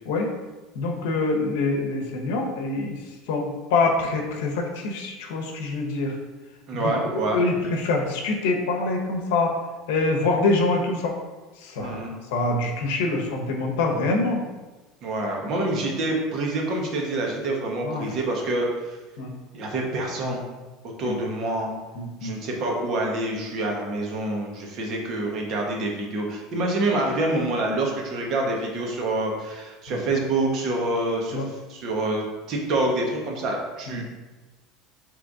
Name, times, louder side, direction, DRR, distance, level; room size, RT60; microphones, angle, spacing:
voice 1, 0.8-3.0 3.3-6.1 6.7-6.8 7.1-9.6 9.9-11.1 11.6-12.0 12.3-14.4 17.8-18.1 19.2-19.3 21.0-21.2 22.0-22.3 29.9-30.0 31.3-31.4 33.9-34.0, left 3 dB, 85° left, 1 dB, 0.8 m, -25 dB
voice 2, 6.7-7.4 11.8-12.1 15.0-19.0 19.5-20.5 21.0-21.7 22.2-34.0, right 2 dB, 45° right, 0 dB, 0.9 m, -27 dB
3.9 x 3.1 x 3.6 m, 1.2 s
supercardioid pair, 145°, 0 cm